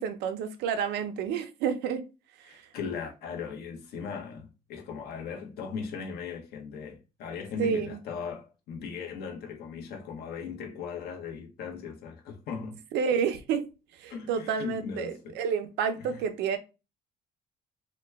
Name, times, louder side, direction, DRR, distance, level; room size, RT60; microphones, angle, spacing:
voice 1, 0.0-2.0 2.4-2.6 7.6-8.0 12.9-13.7 14.0-16.6, right 7 dB, 85° right, 0.6 m, -29 dB
voice 2, 2.5-12.8 14.1-15.4 16.0-16.2, left 5 dB, 70° left, 1.0 m, -38 dB
2.9 x 2.2 x 3.4 m
cardioid pair, 110°, 17 cm